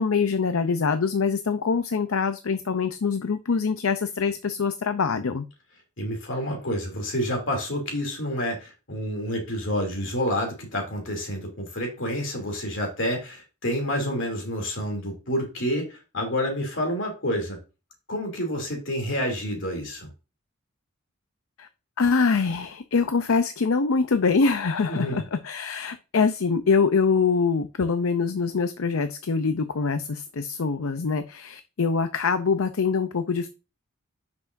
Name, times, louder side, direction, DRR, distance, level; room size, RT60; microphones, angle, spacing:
voice 1, 0.0-5.4 21.6-21.7 22.0-33.5, left 5 dB, 80° left, 10 dB, 0.6 m, -24 dB
voice 2, 6.0-17.6 18.1-20.1 24.9-25.2, equal, 60° left, 1 dB, 2.8 m, -29 dB
10.0 x 6.1 x 2.6 m, 0.30 s
head